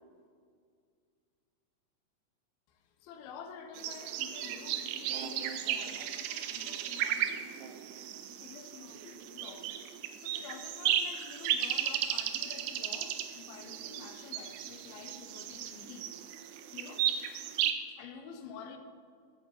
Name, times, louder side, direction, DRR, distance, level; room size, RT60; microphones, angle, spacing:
voice 1, 2.7-7.4 8.4-9.7 10.2-16.1 16.7-17.1 17.8-18.8, left 6 dB, 85° left, 7 dB, 2.6 m, -49 dB
sound 1, 3.7-17.7, right 10 dB, 90° right, 1.8 m, -35 dB
13.0 x 8.7 x 2.9 m, 2.2 s
omnidirectional pair, 4.3 m